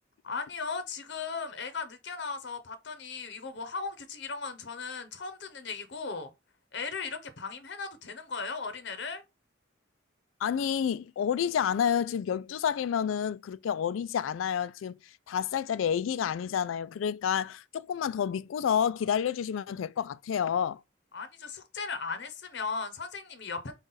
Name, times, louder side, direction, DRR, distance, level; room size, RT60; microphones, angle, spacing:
voice 1, 0.2-6.3 6.7-9.2 21.1-23.7, left 4 dB, 60° left, 0.8 m, -37 dB
voice 2, 10.4-20.8, left 8 dB, 80° left, 0.3 m, -29 dB
5.5 x 2.4 x 3.9 m
head